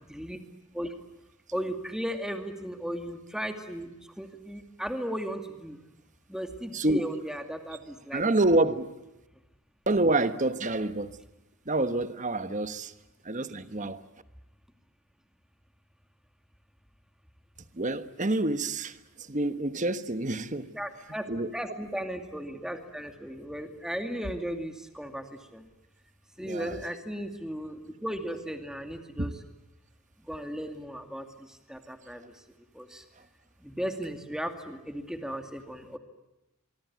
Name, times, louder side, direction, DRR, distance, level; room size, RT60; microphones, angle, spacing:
voice 1, 1.5-3.9 4.2-5.8 6.3-8.2 20.7-21.2 21.5-25.2 25.5-25.6 26.4-29.3 30.3-31.2 31.7-32.2 32.8-33.0 33.6-36.0, equal, 5° right, 2.3 m, -36 dB
voice 2, 8.1-8.9 9.9-11.2 11.6-12.9 13.2-14.0 17.7-20.7 21.3-21.5 26.4-26.8 29.2-29.4, right 2 dB, 35° right, 1.3 m, -27 dB
25.0 x 23.5 x 9.4 m
head